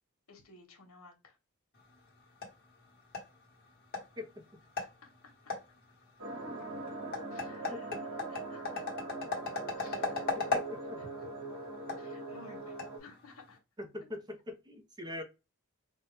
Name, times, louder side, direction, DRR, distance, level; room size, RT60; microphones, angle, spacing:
voice 1, 0.3-1.4 4.8-5.5 7.3-9.1 9.8-10.6 11.0-11.3 12.0-13.6, left 3 dB, 80° left, 3 dB, 1.2 m, -56 dB
sound 1, 1.7-13.6, left 3 dB, 45° left, 1.2 m, -40 dB
sound 2, 6.2-13.0, right 2 dB, 80° right, 1.5 m, -42 dB
voice 2, 10.5-11.0 13.9-15.2, left 2 dB, 20° right, 6 dB, 0.5 m, -42 dB
4.1 x 2.3 x 3.2 m, 0.27 s
head